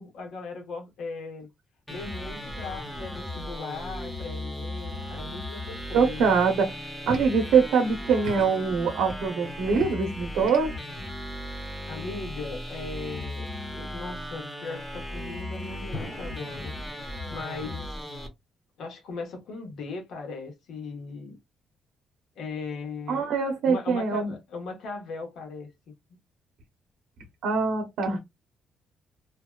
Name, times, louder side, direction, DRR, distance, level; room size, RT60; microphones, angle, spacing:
voice 1, 0.0-1.5 1.9-6.3 11.9-16.7 17.3-18.0 18.8-21.4 22.4-23.3 23.6-25.7, left 4 dB, 75° left, 1.0 m, -38 dB
sound 1, 1.9-18.3, left 1 dB, 5° left, 0.8 m, -37 dB
voice 2, 5.9-6.8 7.0-10.7 23.1-24.3 27.4-28.2, right 5 dB, 85° right, 0.7 m, -23 dB
sound 2, 15.9-17.8, left 3 dB, 40° left, 0.7 m, -44 dB
2.6 x 2.2 x 2.2 m
cardioid pair, 90°, 0 cm